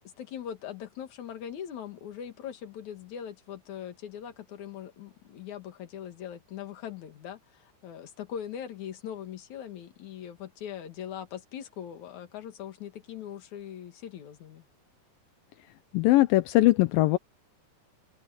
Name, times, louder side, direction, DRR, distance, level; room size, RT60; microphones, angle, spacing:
voice 1, 0.2-14.6, left 9 dB, 50° left, 2.8 m, -41 dB
voice 2, 15.9-17.2, left 17 dB, 80° left, 2.1 m, -21 dB
omnidirectional pair, 5.0 m